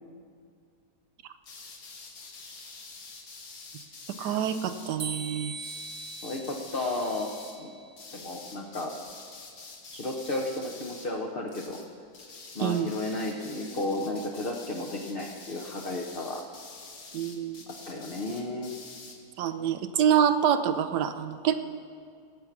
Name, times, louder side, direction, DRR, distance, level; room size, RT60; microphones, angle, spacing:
sound 1, 1.4-5.0 5.6-7.6 8.0-11.2 11.5-11.9 12.1-19.2, left 4 dB, 60° left, 1.8 m, -47 dB
voice 1, 4.2-5.5 12.6-12.9 17.1-17.6 19.4-21.5, right 9 dB, 80° right, 9 dB, 1.2 m, -26 dB
sound 2, 5.0-8.1, right 4 dB, 30° right, 0.7 m, -41 dB
voice 2, 6.2-7.3 7.6-7.7 8.1-8.9 9.9-11.8 12.5-16.4 17.9-18.7, left 2 dB, 40° left, 0 dB, 0.9 m, -33 dB
19.5 x 8.1 x 5.9 m, 2.3 s
omnidirectional pair, 1.8 m